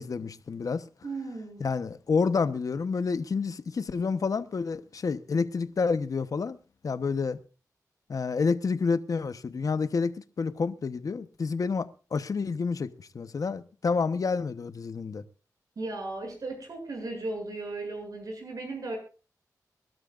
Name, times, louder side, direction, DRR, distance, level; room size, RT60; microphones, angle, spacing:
voice 1, 0.0-0.8 1.6-6.6 6.8-7.4 8.1-15.2, left 5 dB, 60° left, 1.0 m, -29 dB
voice 2, 1.0-1.7 15.8-19.0, right 2 dB, 65° right, 7.6 m, -36 dB
24.0 x 12.5 x 2.5 m
cardioid pair, 70°, 7 cm